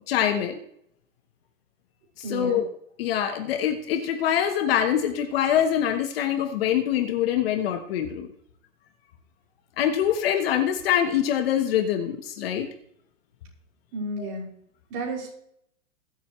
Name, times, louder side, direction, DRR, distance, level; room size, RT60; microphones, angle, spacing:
voice 1, 0.1-0.6 2.3-2.7 3.0-8.3 9.8-12.7 14.2-14.4, left 9 dB, 40° left, 7 dB, 1.4 m, -24 dB
voice 2, 2.2-2.6 13.9-14.5 14.9-15.3, right 1 dB, 40° right, -3 dB, 6.1 m, -32 dB
21.0 x 8.2 x 3.2 m, 0.69 s
hypercardioid pair, 160°, 43 cm